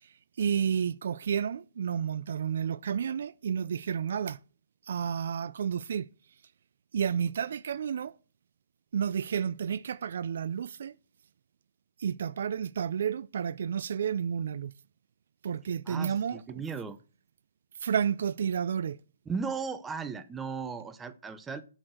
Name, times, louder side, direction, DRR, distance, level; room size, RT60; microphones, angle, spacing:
voice 1, 0.4-4.4 4.9-6.1 6.9-8.1 8.9-10.9 12.0-14.7 15.4-16.6 17.8-19.0, right 7 dB, 65° right, 0.4 m, -31 dB
voice 2, 15.9-17.0 19.3-21.6, right 5 dB, 10° right, 0.7 m, -36 dB
7.8 x 6.3 x 7.7 m
hypercardioid pair, 155°, 0 cm